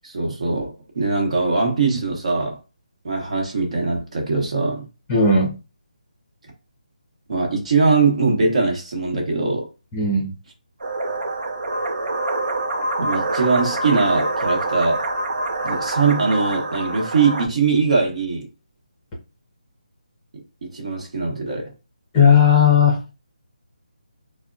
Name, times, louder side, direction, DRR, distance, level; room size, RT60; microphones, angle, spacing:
voice 1, 0.0-2.6 3.0-4.9 7.3-9.7 13.0-15.1 15.6-18.5 20.3-21.7, right 4 dB, 50° right, 1.1 m, -21 dB
voice 2, 5.1-5.5 9.9-10.3 22.1-23.0, left 5 dB, 15° left, 0.6 m, -15 dB
sound 1, 10.8-17.5, right 2 dB, 90° right, 0.7 m, -25 dB
3.4 x 2.1 x 2.5 m
figure-of-eight pair, 165°, 4 cm